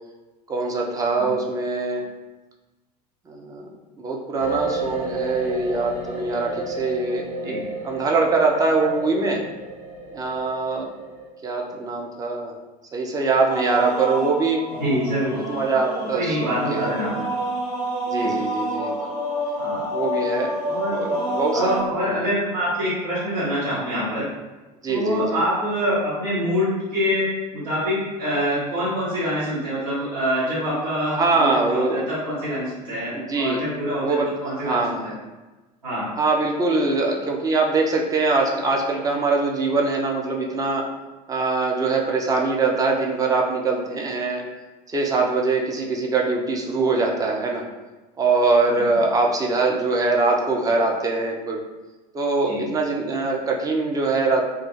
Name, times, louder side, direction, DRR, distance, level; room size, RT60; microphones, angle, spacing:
voice 1, 0.5-2.1 3.3-3.7 4.0-7.5 7.8-9.4 10.1-10.9 11.4-12.5 12.9-14.7 15.3-16.9 17.1-17.2 18.1-19.1 19.9-20.5 20.9-21.7 22.0-22.1 24.8-25.4 31.1-32.0 33.1-33.6 34.0-35.1 36.2-40.8 41.3-44.4 44.9-47.6 48.2-51.6 52.1-54.4, right 3 dB, 15° right, 0 dB, 0.4 m, -23 dB
sound 1, 4.4-11.3, right 3 dB, 40° right, 0.9 m, -32 dB
sound 2, 13.5-21.8, equal, 90° left, 0.6 m, -28 dB
voice 2, 14.8-15.4 16.1-17.1 18.2-18.3 19.6-19.8 20.7-21.1 21.5-24.2 24.9-27.3 27.5-35.1 35.8-36.1 48.7-48.9 52.4-52.6, equal, 85° right, -14 dB, 1.1 m, -25 dB
2.3 x 2.3 x 3.0 m, 1.2 s
figure-of-eight pair, 70°, 21 cm